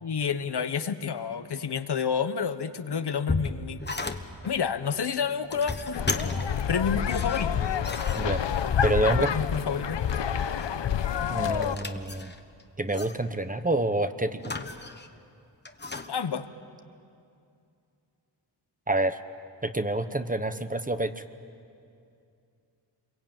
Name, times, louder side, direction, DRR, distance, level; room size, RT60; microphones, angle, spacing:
voice 1, 0.0-3.9 4.4-6.0 6.7-7.6 9.2-10.0 16.1-16.4, left 6 dB, 65° left, 11 dB, 1.1 m, -29 dB
sound 1, 2.9-4.5 5.3-6.7 7.1-8.9 9.9-10.7 11.0-12.6 12.9-13.2 14.4-15.2 15.6-16.1, left 3 dB, 25° left, 1.2 m, -35 dB
sound 2, 5.9-11.8, left 8 dB, 85° left, 0.9 m, -28 dB
voice 2, 8.8-9.3 11.3-12.3 12.8-14.5 18.9-19.2 19.6-21.2, right 2 dB, 20° right, 10 dB, 0.9 m, -27 dB
29.0 x 23.0 x 8.9 m, 2.5 s
wide cardioid pair, 110°, 42 cm